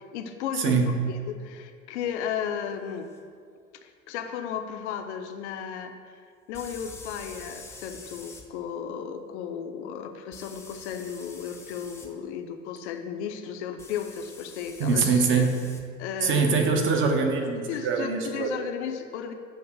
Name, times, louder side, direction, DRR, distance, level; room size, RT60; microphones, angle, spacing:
voice 1, 0.0-0.7 1.1-3.1 3.8-5.9 6.5-15.5 16.0-16.7 17.7-19.3, left 8 dB, 55° left, 6 dB, 0.7 m, -34 dB
voice 2, 0.5-0.9 14.8-15.7 16.2-18.6, right 4 dB, 30° right, 3 dB, 0.9 m, -23 dB
sound 1, 3.1-3.2 6.5-8.4 10.3-12.1 13.8-15.8, left 3 dB, 5° left, 0.5 m, -46 dB
7.9 x 2.9 x 6.0 m, 2.2 s
figure-of-eight pair, 80°, 42 cm